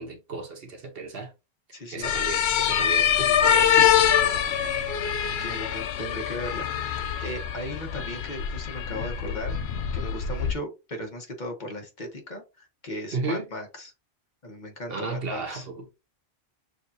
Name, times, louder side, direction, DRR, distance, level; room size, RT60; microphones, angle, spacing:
voice 1, 0.0-1.3 1.9-4.0 13.1-13.5 14.9-16.0, right 3 dB, 65° right, 1.2 m, -34 dB
voice 2, 1.7-2.1 5.2-9.6 9.9-13.9 14.4-15.7, left 1 dB, 45° left, 1.2 m, -37 dB
sound 1, 2.0-10.5, left 9 dB, 75° left, 0.8 m, -24 dB
6.4 x 2.3 x 2.7 m
omnidirectional pair, 1.1 m